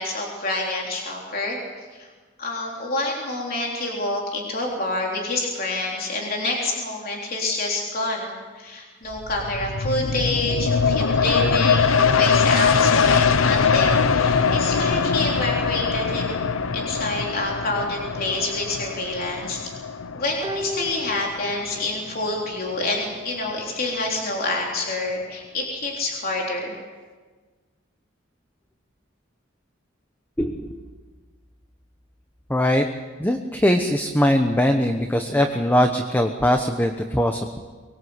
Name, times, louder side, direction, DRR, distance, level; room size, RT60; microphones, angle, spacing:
voice 1, 0.0-1.6 1.9-2.1 2.4-16.4 16.7-19.7 20.1-26.8, left 2 dB, 50° left, -1 dB, 3.7 m, -27 dB
sound 1, 9.1-22.4 22.8-22.9, left 5 dB, 90° left, 0.8 m, -22 dB
sound 2, 20.4-22.1 22.4-22.5, equal, 20° right, 1.1 m, -34 dB
voice 2, 30.4-30.8 32.5-32.8 33.2-37.6, equal, 10° left, 5 dB, 1.1 m, -21 dB
24.5 x 21.0 x 8.1 m, 1.4 s
head